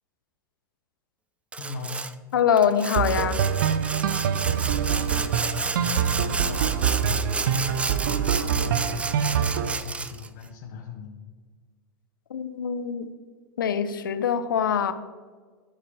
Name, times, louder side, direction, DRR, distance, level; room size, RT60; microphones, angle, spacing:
Sawing, 1.5-2.1 2.6-10.3, right 4 dB, 10° right, 0.4 m, -31 dB
voice 1, 1.6-2.1 4.4-11.1, left 4 dB, 60° left, -2 dB, 1.4 m, -39 dB
voice 2, 2.3-3.4 12.3-13.1 13.6-14.9, left 8 dB, 80° left, 10 dB, 0.6 m, -24 dB
sound 1, 2.9-9.7, right 8 dB, 65° right, 0.5 m, -25 dB
13.0 x 4.9 x 3.4 m, 1.5 s
hypercardioid pair, 100°, 11 cm